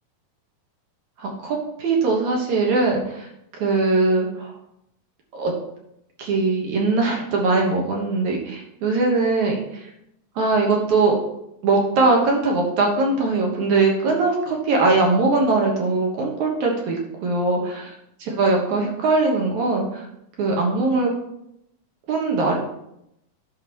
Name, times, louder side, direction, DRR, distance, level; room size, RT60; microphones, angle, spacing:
voice 1, 1.2-3.3 3.6-4.5 5.3-5.5 6.2-9.6 10.4-11.2 11.6-17.9 18.2-20.1 20.4-21.1 22.1-22.6, right 3 dB, 75° right, 0 dB, 2.6 m, -21 dB
10.5 x 6.1 x 3.0 m, 0.80 s
omnidirectional pair, 3.5 m